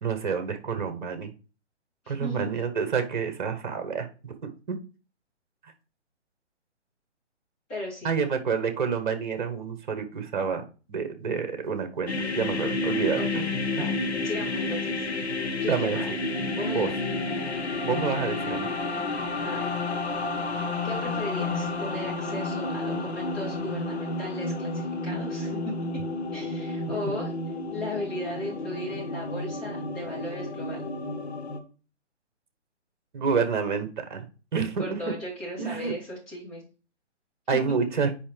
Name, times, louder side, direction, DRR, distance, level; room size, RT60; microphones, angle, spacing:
voice 1, 0.0-1.3 2.1-4.3 4.7-4.8 8.0-10.6 10.9-13.5 15.7-16.0 16.7-16.9 17.8-18.7 27.1-27.2 33.1-34.2 34.5-35.1 35.6-35.9 37.5-38.1, right 5 dB, 40° right, 7 dB, 1.3 m, -28 dB
voice 2, 2.0-2.5 7.7-8.2 13.1-13.4 13.7-13.9 14.2-15.1 15.6-16.1 16.5-16.9 19.4-19.6 20.5-25.6 26.3-27.3 27.7-30.9 34.8-36.6, left 1 dB, 20° left, -6 dB, 3.3 m, -36 dB
sound 1, 12.1-31.6, left 2 dB, 65° left, 1.2 m, -31 dB
8.6 x 5.1 x 3.4 m, 0.35 s
figure-of-eight pair, 135°, 36 cm